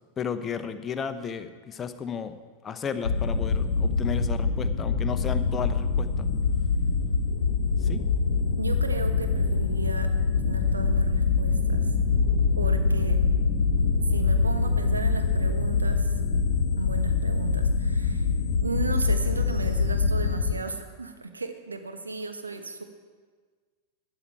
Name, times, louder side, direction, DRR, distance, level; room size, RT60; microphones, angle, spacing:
voice 1, 0.2-2.3 2.6-6.3 7.8-8.0, left 7 dB, 20° left, 9 dB, 0.8 m, -33 dB
sound 1, 3.0-20.5, left 4 dB, 70° left, 1.2 m, -24 dB
voice 2, 8.6-10.1 10.4-11.9 12.6-13.2 14.1-16.1 16.8-18.3 18.6-22.8, right 3 dB, 80° right, 7 dB, 1.1 m, -35 dB
12.0 x 10.0 x 4.6 m, 1.5 s
figure-of-eight pair, 90°, 0 cm